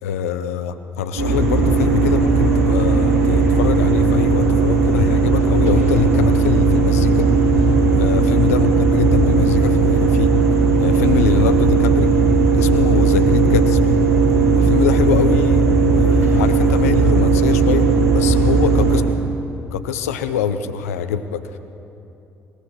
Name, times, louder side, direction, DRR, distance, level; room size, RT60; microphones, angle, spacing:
voice 1, 0.0-7.3 8.0-10.3 10.8-12.1 12.5-13.9 14.5-17.9 18.1-19.0 19.7-21.6, left 8 dB, 75° left, 10 dB, 0.6 m, -24 dB
sound 1, 1.2-19.0, right 4 dB, 80° right, 1.8 m, -16 dB
22.0 x 19.5 x 3.2 m, 2.8 s
figure-of-eight pair, 50°, 8 cm